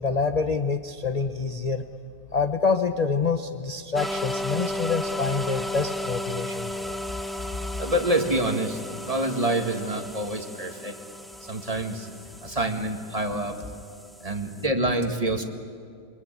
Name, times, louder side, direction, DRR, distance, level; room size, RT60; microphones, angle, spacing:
voice 1, 0.0-1.8 2.3-7.0, left 4 dB, 35° left, 8 dB, 0.7 m, -26 dB
sound 1, 3.9-14.6, left 1 dB, ahead, 0.8 m, -35 dB
voice 2, 7.8-8.8 9.1-10.9 11.4-12.1 12.4-13.6 14.2-15.4, right 1 dB, 25° right, 4 dB, 1.9 m, -26 dB
27.5 x 24.0 x 9.1 m, 2.3 s
omnidirectional pair, 1.6 m